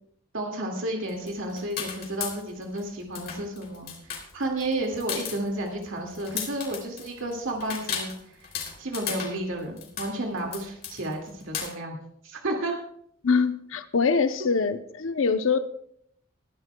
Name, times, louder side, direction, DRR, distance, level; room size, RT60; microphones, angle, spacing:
voice 1, 0.3-8.1 8.8-12.8 14.4-14.5, right 1 dB, 85° right, 1 dB, 2.1 m, -32 dB
sound 1, 1.1-2.8 3.1-11.7, left 7 dB, 50° left, 3.1 m, -35 dB
voice 2, 13.2-15.6, left 5 dB, 80° left, 10 dB, 0.7 m, -24 dB
20.5 x 12.5 x 2.3 m, 0.68 s
head